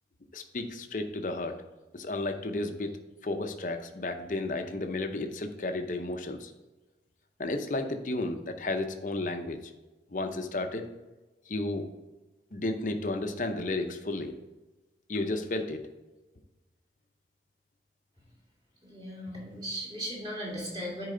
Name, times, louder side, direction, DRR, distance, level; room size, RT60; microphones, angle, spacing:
voice 1, 0.3-1.6 1.9-2.9 3.2-6.5 7.4-9.6 10.1-10.9 11.5-11.9 12.5-14.3 15.1-15.8, left 2 dB, 45° left, 6 dB, 0.7 m, -32 dB
voice 2, 18.8-21.1, equal, 25° right, -5 dB, 2.4 m, -37 dB
9.8 x 4.7 x 3.8 m, 1.1 s
head